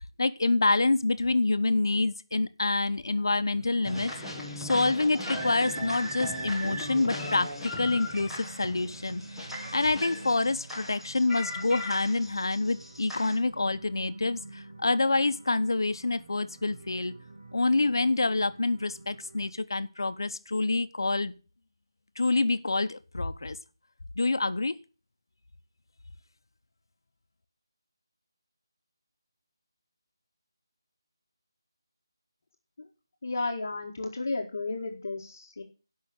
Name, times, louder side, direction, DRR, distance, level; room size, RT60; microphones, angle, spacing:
voice 1, 0.2-4.1 4.6-17.1 17.5-21.3 22.2-23.6 24.2-24.8, left 3 dB, 60° left, 12 dB, 1.0 m, -27 dB
sound 1, 3.1-19.5, right 2 dB, 65° right, 3.1 m, -48 dB
sound 2, 3.8-13.4, left 1 dB, ahead, 1.0 m, -38 dB
voice 2, 33.2-35.6, left 3 dB, 35° left, 1 dB, 1.5 m, -33 dB
12.5 x 5.8 x 8.8 m, 0.35 s
figure-of-eight pair, 180°, 2 cm